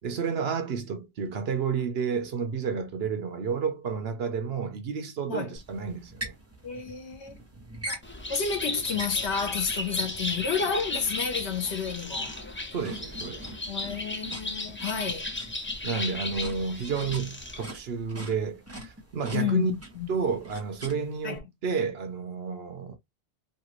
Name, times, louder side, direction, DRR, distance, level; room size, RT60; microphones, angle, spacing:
voice 1, 0.0-6.4 12.7-13.5 15.8-19.7 20.1-23.0, right 5 dB, 70° right, 1.0 m, -31 dB
sound 1, 5.6-21.4, right 1 dB, 15° right, 1.0 m, -44 dB
voice 2, 6.6-7.4 7.9-8.0 8.3-12.3 13.7-15.3 19.3-20.1 21.2-21.4, left 6 dB, 90° left, 1.3 m, -31 dB
Bird, 8.0-17.7, left 2 dB, 15° left, 0.6 m, -35 dB
3.2 x 2.4 x 3.0 m
omnidirectional pair, 1.1 m